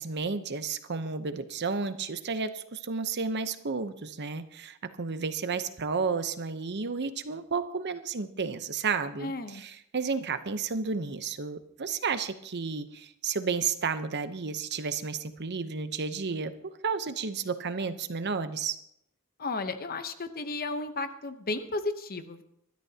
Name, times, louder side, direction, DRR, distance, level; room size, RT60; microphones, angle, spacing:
voice 1, 0.0-16.5 16.8-18.8, right 5 dB, 50° right, 11 dB, 0.9 m, -32 dB
voice 2, 9.2-9.6 19.4-22.4, left 3 dB, 45° left, 9 dB, 0.9 m, -33 dB
25.0 x 12.5 x 2.9 m, 0.76 s
head